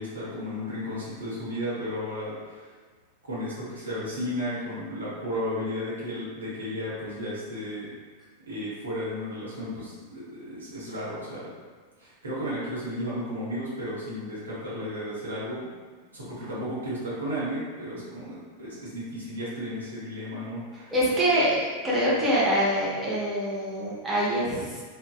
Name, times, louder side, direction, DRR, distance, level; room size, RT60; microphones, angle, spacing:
voice 1, 0.0-2.7 3.2-7.9 8.5-11.5 12.0-15.6 16.1-20.9, equal, 75° right, -8 dB, 0.8 m, -34 dB
voice 2, 20.9-24.8, equal, 15° right, -8 dB, 0.7 m, -25 dB
2.5 x 2.1 x 2.3 m, 1.5 s
figure-of-eight pair, 90°, 0 cm